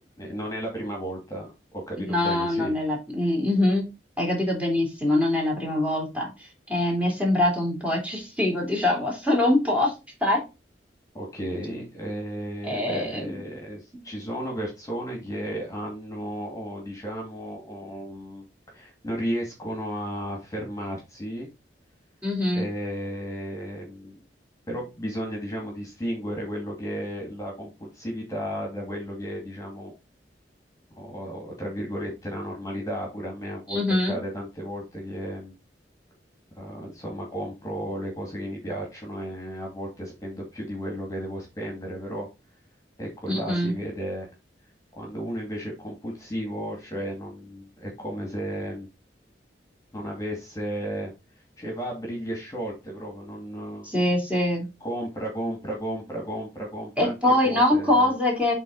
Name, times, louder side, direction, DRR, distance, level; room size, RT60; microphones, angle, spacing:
voice 1, 0.2-2.8 11.1-18.5 18.7-21.5 22.5-24.2 24.7-29.9 31.0-35.5 36.6-42.3 43.0-44.3 44.9-48.9 49.9-51.1 51.6-54.2 54.8-57.1 57.4-58.1, equal, 20° left, 0 dB, 2.2 m, -34 dB
voice 2, 2.0-3.8 4.2-6.3 6.7-9.9 10.2-10.4 12.6-13.3 22.2-22.6 33.7-34.2 43.3-43.7 53.8-54.7 57.0-58.5, left 1 dB, 10° right, -1 dB, 3.1 m, -23 dB
8.2 x 3.8 x 4.0 m, 0.26 s
head